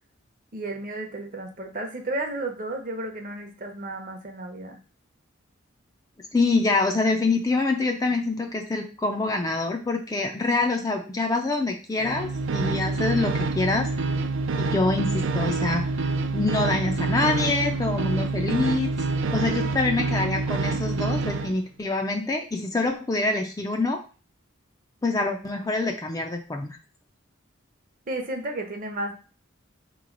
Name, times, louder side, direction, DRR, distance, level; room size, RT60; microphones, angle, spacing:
voice 1, 0.5-4.8 28.1-29.1, right 2 dB, 40° right, 4 dB, 0.8 m, -33 dB
voice 2, 6.3-14.1 14.5-18.9 19.3-24.0 25.0-26.8, left 3 dB, 20° left, 3 dB, 0.4 m, -26 dB
sound 1, 12.0-21.5, right 3 dB, 70° right, 0.4 m, -27 dB
3.9 x 3.1 x 3.8 m, 0.36 s
head